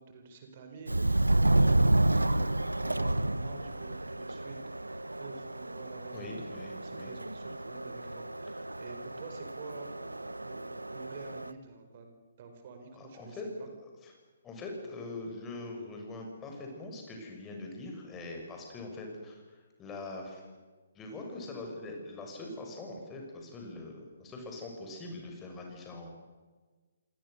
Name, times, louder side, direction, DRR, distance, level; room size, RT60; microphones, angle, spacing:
voice 1, 0.0-6.3 6.8-12.1 12.4-13.7, right 4 dB, 40° right, 6 dB, 4.8 m, -49 dB
Subway metro underground, 0.9-11.5, right 1 dB, 80° right, 1.0 m, -30 dB
voice 2, 6.1-7.1 12.9-13.5 13.8-14.1 14.4-20.4 21.0-26.1, left 2 dB, 15° left, 1 dB, 6.9 m, -43 dB
28.5 x 27.0 x 6.9 m, 1.4 s
figure-of-eight pair, 130°, 0 cm